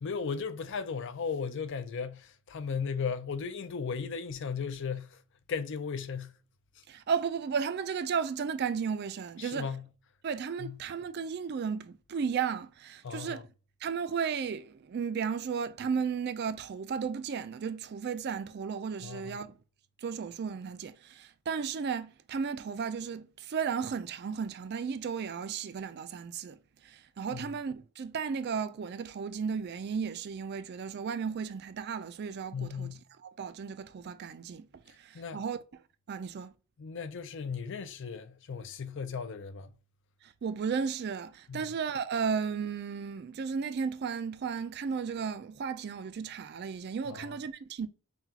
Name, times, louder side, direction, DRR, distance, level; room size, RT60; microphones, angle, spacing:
voice 1, 0.0-5.2 5.5-6.3 6.8-6.9 9.4-9.8 10.6-10.8 13.0-13.4 19.0-19.4 27.3-27.5 32.5-33.0 35.1-35.4 36.8-39.7 41.5-41.7 47.1-47.4, left 5 dB, 55° left, 0.4 m, -36 dB
voice 2, 6.9-9.7 10.2-13.5 13.8-19.6 20.0-32.9 33.2-35.6 36.1-36.5 40.2-47.9, right 6 dB, 45° right, 0.3 m, -34 dB
5.7 x 2.3 x 2.8 m
head